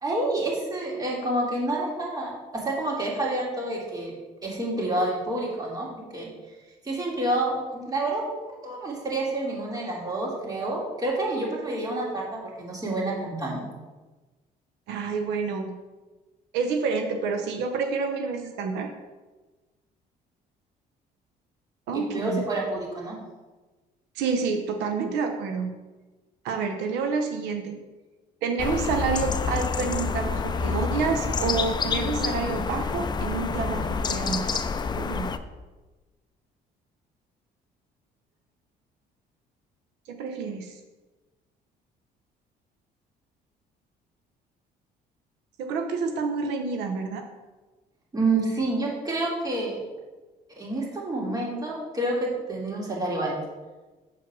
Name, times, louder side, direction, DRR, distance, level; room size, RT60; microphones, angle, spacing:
voice 1, 0.0-4.1 4.4-5.9 6.1-6.3 6.8-8.3 8.6-13.7 21.9-23.2 48.1-49.8 50.6-53.3, right 2 dB, 20° right, -3 dB, 2.7 m, -28 dB
voice 2, 14.9-15.8 16.5-18.9 21.9-22.4 24.2-25.7 26.4-27.8 28.4-34.6 35.0-35.3 40.1-40.8 45.6-47.2, right 5 dB, 85° right, 5 dB, 0.8 m, -28 dB
sound 1, 28.6-35.4, left 5 dB, 25° left, 0.5 m, -28 dB
7.4 x 4.7 x 6.0 m, 1.2 s
cardioid pair, 110°, 17 cm